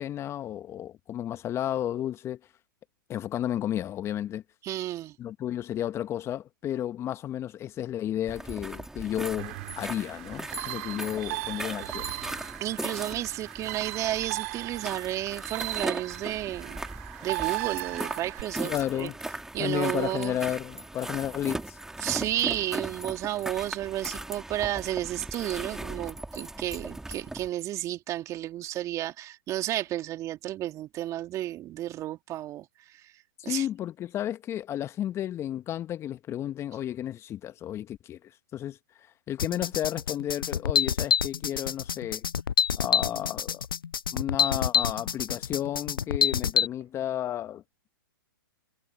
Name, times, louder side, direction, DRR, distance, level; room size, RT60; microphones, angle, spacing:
voice 1, 0.0-2.4 3.1-4.4 5.2-12.1 18.6-19.2 19.6-21.8 33.4-38.8 39.3-42.2 42.8-43.6 44.1-47.6, left 11 dB, 25° left, 1.5 m, -32 dB
voice 2, 4.6-5.1 12.6-16.8 17.2-19.1 19.5-20.4 22.0-32.7 33.4-33.7, right 14 dB, 30° right, 2.7 m, -32 dB
sound 1, 8.3-27.5, right 2 dB, 5° right, 4.0 m, -38 dB
sound 2, 9.4-18.4, right 22 dB, 45° right, 3.3 m, -37 dB
sound 3, 39.4-46.7, left 7 dB, 80° left, 0.5 m, -26 dB
hypercardioid pair, 120°, 11 cm